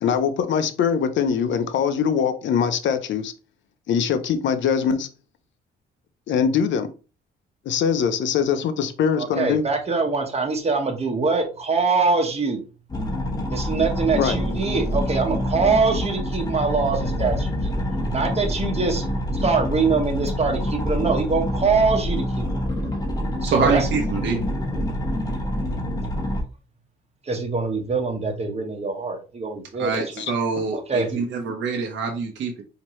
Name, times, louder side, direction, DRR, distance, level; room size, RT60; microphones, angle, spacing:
voice 1, 0.0-3.3 3.9-5.1 6.3-6.9 7.7-9.6 14.2-14.4 30.2-30.3, left 7 dB, 70° left, 10 dB, 0.7 m, -22 dB
voice 2, 9.2-12.6 13.5-19.1 19.3-22.4 23.4-23.9 27.2-30.0 30.7-31.2, right 4 dB, 30° right, 3 dB, 1.2 m, -23 dB
sound 1, 12.9-26.4, equal, 20° left, 1.3 m, -26 dB
voice 3, 23.4-24.4 29.8-32.6, right 5 dB, 65° right, 2 dB, 0.8 m, -25 dB
4.5 x 2.9 x 3.1 m, 0.34 s
cardioid pair, 90°, 20 cm